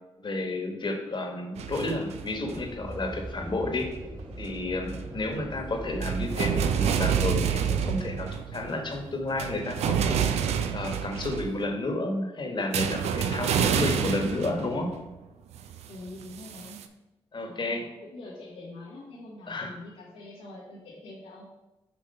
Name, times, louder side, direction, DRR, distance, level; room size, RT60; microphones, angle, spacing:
voice 1, 0.2-3.9 4.4-10.2 10.7-14.9 17.3-17.8 19.5-19.7, left 2 dB, 45° left, 3 dB, 1.3 m, -31 dB
sound 1, 1.6-2.9 4.2-4.6 4.9-5.0 6.0-11.7 12.7-15.1 15.5-16.8, right 8 dB, 80° right, 0.4 m, -28 dB
sound 2, 2.3-8.1, right 2 dB, 40° right, 1.5 m, -39 dB
voice 2, 5.1-5.5 13.2-13.6 15.9-16.8 17.5-21.4, left 2 dB, 90° left, -7 dB, 1.3 m, -44 dB
5.9 x 2.9 x 5.4 m, 1.0 s
supercardioid pair, 45°, 11 cm